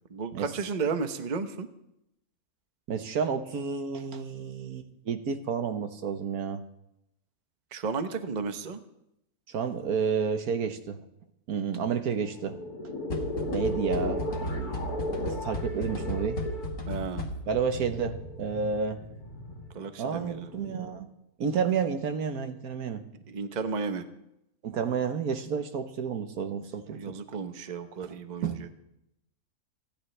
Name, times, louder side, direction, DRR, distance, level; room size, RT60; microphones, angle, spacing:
voice 1, 0.1-1.7 7.7-8.8 16.9-17.3 19.7-20.5 23.3-24.0 26.9-28.7, right 5 dB, 35° right, 8 dB, 0.9 m, -33 dB
voice 2, 2.9-6.6 9.5-11.0 11.5-12.6 13.5-14.9 15.2-16.4 17.5-19.0 20.0-21.1 21.4-23.0 24.6-27.2 28.0-28.1 28.4-28.6, right 6 dB, 75° right, 7 dB, 1.5 m, -31 dB
sound 1, 12.2-21.0, left 1 dB, 90° left, 2.7 m, -36 dB
sound 2, 13.1-17.7, equal, 70° left, 2.2 m, -35 dB
29.5 x 10.5 x 3.3 m, 0.83 s
omnidirectional pair, 1.6 m